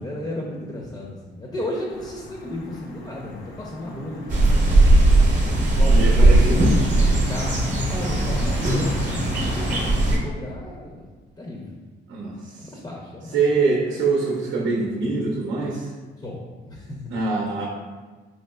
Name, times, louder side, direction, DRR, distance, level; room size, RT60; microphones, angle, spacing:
voice 1, 0.0-4.4 5.7-11.1 11.4-11.8 12.6-13.4 16.2-17.0 17.6-17.7, left 1 dB, 20° left, -2 dB, 0.6 m, -34 dB
sound 1, 1.9-9.9, left 2 dB, 85° left, 0.5 m, -39 dB
sound 2, 4.3-10.2, right 2 dB, 40° right, 0.8 m, -18 dB
voice 2, 5.8-6.7 12.1-12.3 13.3-15.9 17.1-17.6, right 3 dB, 75° right, -3 dB, 0.6 m, -23 dB
4.2 x 3.0 x 2.2 m, 1.3 s
cardioid pair, 90°, 20 cm